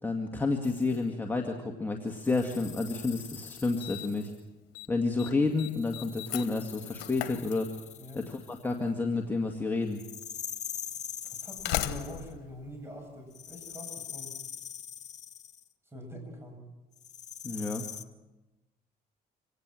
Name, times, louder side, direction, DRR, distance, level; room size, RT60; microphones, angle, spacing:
voice 1, 0.0-4.3 4.9-7.7 8.1-10.0 17.4-17.9, left 3 dB, 10° left, 2 dB, 2.0 m, -30 dB
sound 1, 0.6-1.0 2.1-4.4 5.6-8.8 9.9-12.3 13.3-15.7 17.0-18.0, left 9 dB, 45° left, 1.1 m, -43 dB
Slam, 3.0-3.1 3.8-4.3 4.5-4.9 5.2-8.1 9.2-9.3 10.2-10.3 11.2-13.6, left 14 dB, 85° left, 1.2 m, -37 dB
voice 2, 11.3-14.4 15.9-16.6, equal, 15° right, 3 dB, 7.8 m, -44 dB
26.0 x 18.0 x 7.7 m, 1.1 s
cardioid pair, 110°, 17 cm